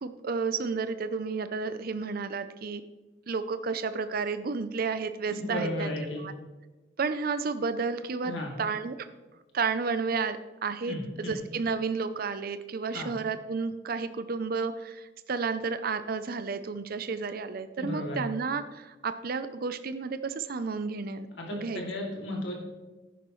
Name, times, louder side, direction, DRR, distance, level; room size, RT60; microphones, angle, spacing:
voice 1, 0.0-2.8 3.3-5.9 6.2-6.3 7.0-9.1 9.5-22.0, right 4 dB, 55° right, 11 dB, 0.5 m, -32 dB
voice 2, 5.4-6.2 8.2-8.5 10.9-11.4 12.9-13.1 17.8-18.3 21.4-22.5, left 1 dB, 70° left, -1 dB, 2.6 m, -34 dB
11.0 x 10.0 x 3.1 m, 1.2 s
head